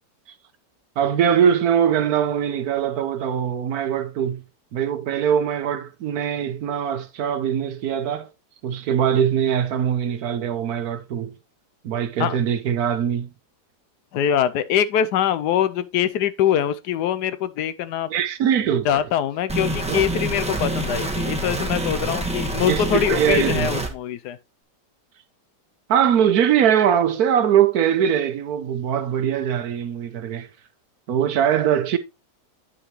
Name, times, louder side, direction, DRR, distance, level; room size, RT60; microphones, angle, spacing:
voice 1, 1.0-4.4 4.7-8.3 8.6-11.3 11.8-13.3 18.1-19.0 19.9-20.0 22.7-23.7 25.9-30.5 31.1-32.0, right 9 dB, 65° right, 1.2 m, -21 dB
voice 2, 14.1-18.1 18.8-24.4, left 9 dB, 75° left, 1.2 m, -23 dB
sound 1, 19.5-23.9, right 2 dB, 5° right, 1.0 m, -26 dB
9.5 x 6.1 x 3.0 m
omnidirectional pair, 1.8 m